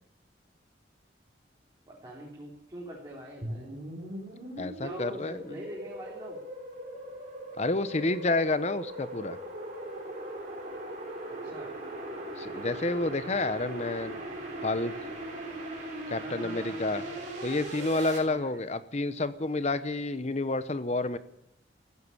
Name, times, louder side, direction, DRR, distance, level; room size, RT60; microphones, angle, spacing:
voice 1, 1.9-3.7 4.8-6.4 11.3-11.7 16.1-17.4 18.2-18.6, right 1 dB, 20° right, -5 dB, 3.5 m, -44 dB
sound 1, 3.4-18.2, right 1 dB, 40° right, 4.3 m, -39 dB
voice 2, 4.6-5.5 7.6-9.4 12.4-14.2 14.6-14.9 16.1-17.0 17.4-21.2, left 2 dB, 35° left, 13 dB, 0.8 m, -29 dB
14.0 x 11.0 x 8.6 m, 0.78 s
head